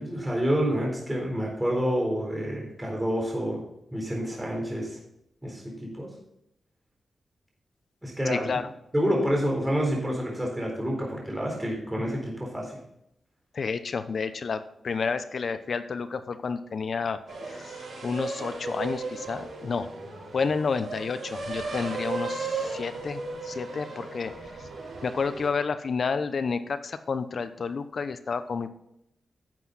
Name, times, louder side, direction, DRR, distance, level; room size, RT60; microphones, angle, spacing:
voice 1, 0.0-3.6 3.9-5.0 5.4-6.1 8.0-8.5 8.9-12.7, equal, 10° right, -1 dB, 3.9 m, -28 dB
voice 2, 8.3-8.7 13.5-17.2 17.4-19.9 20.3-24.7 25.0-28.7, left 5 dB, 65° left, 11 dB, 0.8 m, -30 dB
sound 1, 17.3-25.5, right 3 dB, 80° right, 3.9 m, -36 dB
10.5 x 8.0 x 4.2 m, 0.79 s
cardioid pair, 70°, 0 cm